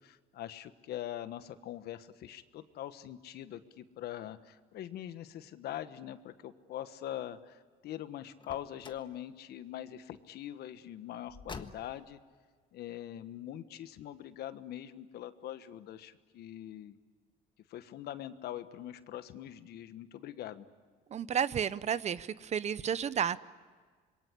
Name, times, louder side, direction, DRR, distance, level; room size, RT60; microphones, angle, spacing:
voice 1, 0.0-12.2 12.7-17.0 17.7-20.7, left 12 dB, 70° left, 12 dB, 1.3 m, -43 dB
Car, 8.4-9.1 11.3-12.1, left 4 dB, 30° left, 1.5 m, -47 dB
voice 2, 21.1-23.4, right 8 dB, 40° right, 16 dB, 0.8 m, -32 dB
26.5 x 22.5 x 9.9 m, 1.5 s
cardioid pair, 110°, 17 cm